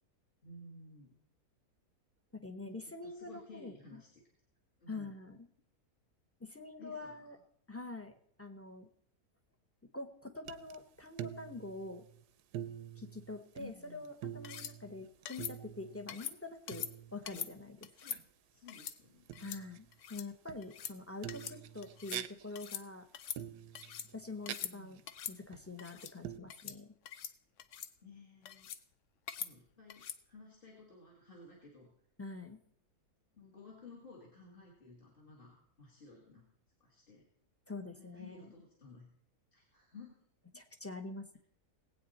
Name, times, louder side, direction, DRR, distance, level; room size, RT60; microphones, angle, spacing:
voice 1, 0.4-1.2 2.6-2.8 3.0-4.2 4.8-5.1 6.8-7.2 13.6-14.1 17.9-18.2 18.5-19.3 24.6-25.0 28.0-28.7 29.3-31.9 33.3-36.5 36.8-37.2 37.9-39.1 39.5-40.2 40.5-40.6, left 3 dB, 35° left, -1 dB, 2.3 m, -55 dB
voice 2, 2.3-3.7 4.9-5.4 6.4-7.4 7.7-8.1 8.4-8.9 9.9-12.0 13.0-16.9 17.1-17.9 19.4-23.1 24.1-25.0 25.3-26.9 32.2-32.6 37.7-38.5 40.5-41.4, left 3 dB, 10° left, 6 dB, 0.8 m, -45 dB
sound 1, 10.5-10.8 11.1-12.2 12.5-13.8 14.1-16.1 16.7-17.4 18.1-18.2 19.3-20.0 20.5-20.9 21.2-22.7 23.4-24.6 25.0-25.1 25.5-25.9 26.2-26.4, right 11 dB, 85° right, 1.2 m, -46 dB
sound 2, 14.4-14.7 15.3-15.5 16.1-16.4 16.7-16.9 17.3-17.5 17.8-18.2 18.7-19.0 19.3-19.6 19.9-20.3 20.6-20.9 21.3-21.6 21.8-22.2 22.6-22.8 23.1-24.1 24.4-24.7 25.1-25.4 25.8-26.1 26.5-26.8 27.1-27.3 27.6-27.9 28.5-28.8 29.3-29.5 29.9-30.2, left 9 dB, 60° left, 0.9 m, -43 dB
19.0 x 8.6 x 4.2 m, 0.67 s
omnidirectional pair, 1.7 m